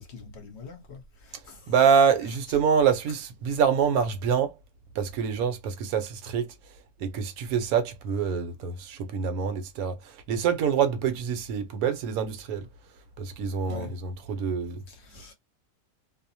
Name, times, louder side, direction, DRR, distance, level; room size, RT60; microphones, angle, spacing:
voice 1, 0.0-1.7 13.7-13.9 14.9-15.3, left 4 dB, 55° left, 0.9 m, -44 dB
voice 2, 1.7-4.5 4.9-6.5 7.0-12.7 13.2-14.8, right 7 dB, 75° right, 1.0 m, -26 dB
2.6 x 2.0 x 2.7 m
omnidirectional pair, 1.6 m